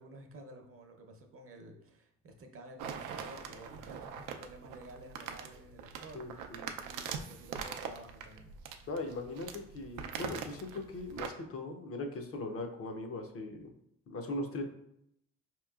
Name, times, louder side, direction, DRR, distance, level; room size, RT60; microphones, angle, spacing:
voice 1, 0.0-6.5 6.8-8.5, right 1 dB, 45° right, 4 dB, 0.7 m, -52 dB
sound 1, 2.8-11.3, right 7 dB, 90° right, 0.5 m, -43 dB
voice 2, 6.1-6.7 8.9-13.7 14.1-14.6, left 2 dB, 50° left, 4 dB, 0.6 m, -39 dB
4.6 x 2.9 x 2.3 m, 0.77 s
cardioid pair, 90°, 30 cm